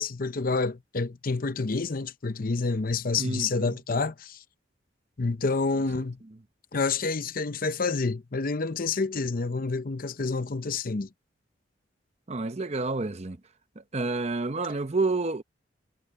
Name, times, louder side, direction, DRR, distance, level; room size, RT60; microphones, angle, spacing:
voice 1, 0.0-4.4 5.2-6.2 6.7-11.1, left 4 dB, 50° left, 0.7 m, -28 dB
voice 2, 3.2-3.8 12.3-13.4 13.9-15.4, right 3 dB, 35° right, 0.8 m, -29 dB
head